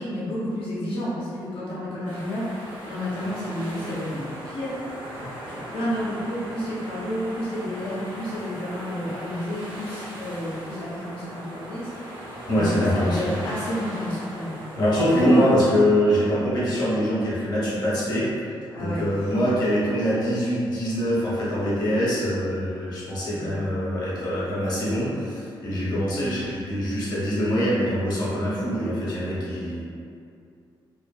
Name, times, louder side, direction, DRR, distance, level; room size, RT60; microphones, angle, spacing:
voice 1, 0.0-14.6 15.1-15.5 16.0-16.2 18.7-19.4 23.2-23.6 25.6-25.9, equal, 85° left, -9 dB, 0.7 m, -31 dB
sound 1, 2.0-15.6, right 1 dB, 85° right, 0.7 m, -39 dB
voice 2, 12.5-13.4 14.7-18.3 18.8-29.9, equal, 50° left, -8 dB, 0.8 m, -24 dB
2.5 x 2.5 x 2.3 m, 2.4 s
wide cardioid pair, 165°, 9 cm